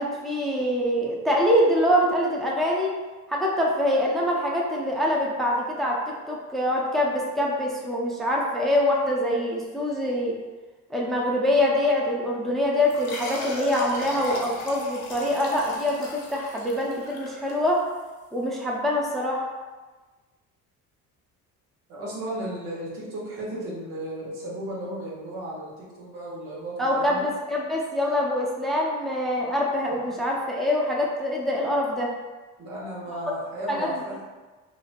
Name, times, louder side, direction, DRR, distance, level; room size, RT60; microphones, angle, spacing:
voice 1, 0.0-2.9 3.3-10.3 10.9-17.8 18.3-19.5 26.8-32.1 33.7-34.0, left 1 dB, ahead, -2 dB, 0.4 m, -24 dB
sound 1, 12.9-18.0, left 2 dB, 85° left, 0.7 m, -38 dB
voice 2, 21.9-27.3 32.6-34.2, right 1 dB, 85° right, -5 dB, 1.0 m, -34 dB
3.0 x 2.5 x 2.4 m, 1.3 s
supercardioid pair, 85°, 36 cm